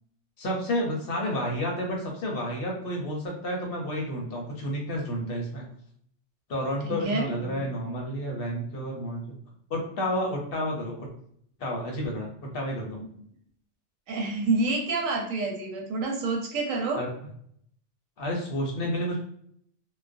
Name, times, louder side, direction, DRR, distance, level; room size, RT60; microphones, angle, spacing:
voice 1, 0.4-5.7 6.5-9.3 9.7-11.1 11.6-13.0 17.0-17.1 18.2-19.2, equal, 55° left, 0 dB, 0.7 m, -30 dB
voice 2, 6.8-7.7 14.1-17.0, right 3 dB, 90° right, 0 dB, 1.0 m, -28 dB
2.3 x 2.1 x 2.4 m, 0.66 s
omnidirectional pair, 1.3 m